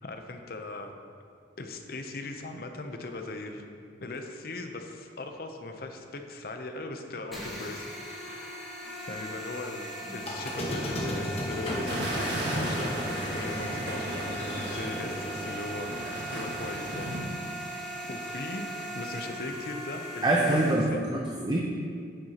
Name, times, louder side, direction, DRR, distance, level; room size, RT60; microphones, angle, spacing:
voice 1, 0.0-1.0 1.6-3.7 4.0-8.5 9.1-15.9 16.3-17.1 18.1-18.7 18.9-20.6 20.9-21.0, left 2 dB, 55° left, 5 dB, 0.6 m, -39 dB
sound 1, 7.3-20.7, right 1 dB, ahead, 1.4 m, -39 dB
Squeak, 10.2-15.6, left 1 dB, 35° left, 1.2 m, -35 dB
sound 2, 11.9-17.2, right 1 dB, 70° right, 1.6 m, -35 dB
voice 2, 20.2-21.8, right 2 dB, 25° right, -1 dB, 0.6 m, -25 dB
9.6 x 7.8 x 2.9 m, 2.3 s
head